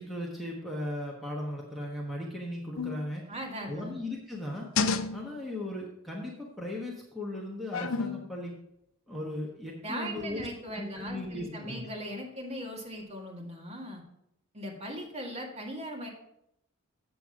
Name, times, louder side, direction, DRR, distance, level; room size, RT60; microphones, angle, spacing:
voice 1, 0.0-3.2 3.7-4.7 5.1-8.6 9.1-10.5 10.8-11.9, left 1 dB, ahead, -4 dB, 1.1 m, -37 dB
sound 1, 2.8-3.1 4.3-5.5 7.7-8.3 10.2-10.6 11.1-11.2, left 4 dB, 65° left, 0.5 m, -31 dB
voice 2, 3.3-4.0 9.8-14.0 14.5-16.1, equal, 30° right, -1 dB, 1.8 m, -39 dB
7.8 x 6.9 x 4.7 m, 0.77 s
head